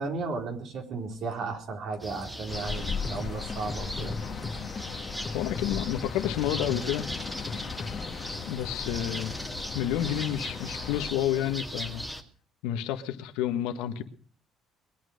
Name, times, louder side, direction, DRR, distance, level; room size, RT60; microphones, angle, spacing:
voice 1, 0.0-4.2, right 4 dB, 65° right, 3 dB, 4.3 m, -34 dB
sound 1, 2.0-12.2, equal, 10° right, 2.1 m, -38 dB
sound 2, 2.5-11.1, left 7 dB, 50° left, 1.5 m, -38 dB
sound 3, 3.0-4.9 5.3-8.2, left 3 dB, 30° left, 1.5 m, -39 dB
voice 2, 5.3-7.1 7.8-8.0 8.4-9.3 9.7-12.0 12.6-14.0, left 11 dB, 90° left, 8 dB, 1.4 m, -30 dB
22.0 x 9.1 x 6.5 m, 0.44 s
cardioid pair, 90°, 0 cm